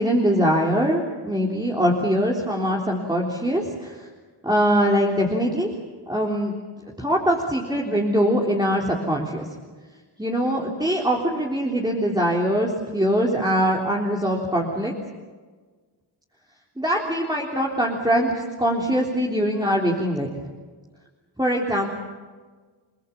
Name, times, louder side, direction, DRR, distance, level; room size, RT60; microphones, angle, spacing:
voice 1, 0.0-4.1 4.4-5.7 6.1-6.5 7.0-9.5 10.2-14.9 16.8-20.3 21.4-21.9, equal, 10° right, -2 dB, 3.5 m, -22 dB
30.0 x 20.0 x 7.2 m, 1.4 s
wide cardioid pair, 90°, 43 cm